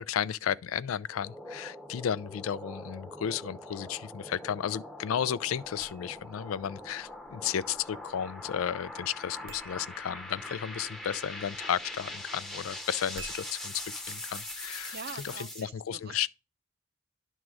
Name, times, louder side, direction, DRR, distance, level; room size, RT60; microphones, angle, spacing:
voice 1, 0.0-13.7 14.1-15.0 15.2-16.3, left 9 dB, 90° left, 0.4 m, -33 dB
sound 1, 1.0-15.6, left 1 dB, ahead, 0.8 m, -43 dB
sound 2, 5.6-15.4, right 5 dB, 90° right, 0.8 m, -54 dB
voice 2, 14.9-16.3, right 5 dB, 50° right, 0.6 m, -44 dB
10.5 x 3.6 x 6.2 m
head